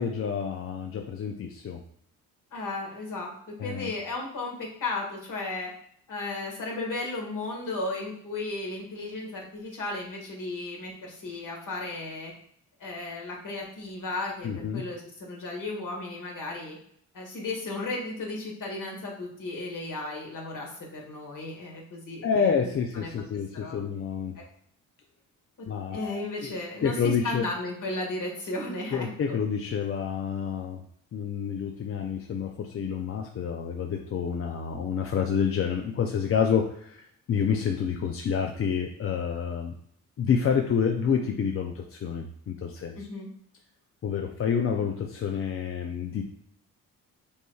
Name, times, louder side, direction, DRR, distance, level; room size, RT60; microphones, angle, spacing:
voice 1, 0.0-1.8 3.6-3.9 14.4-14.8 22.2-24.4 25.7-26.5 26.8-27.4 28.9-30.8 31.1-39.7 40.2-43.0 44.0-46.3, left 7 dB, 35° left, 3 dB, 0.5 m, -28 dB
voice 2, 2.5-5.7 6.1-12.3 12.8-16.8 17.1-23.1 23.5-23.8 24.3-24.4 25.6-29.4 42.9-43.3, left 2 dB, 55° left, -1 dB, 1.6 m, -35 dB
5.4 x 3.1 x 2.3 m, 0.66 s
supercardioid pair, 60°, 37 cm